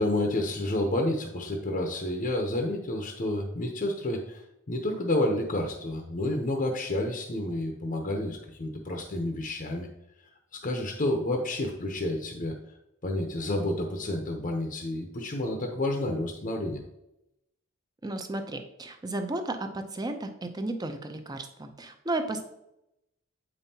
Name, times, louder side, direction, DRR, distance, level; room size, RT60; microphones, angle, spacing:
voice 1, 0.0-9.9 10.5-12.5 13.0-16.8, left 1 dB, 35° left, 2 dB, 0.6 m, -30 dB
voice 2, 18.0-22.4, right 2 dB, 20° right, 7 dB, 0.5 m, -33 dB
8.0 x 5.3 x 2.8 m, 0.87 s
head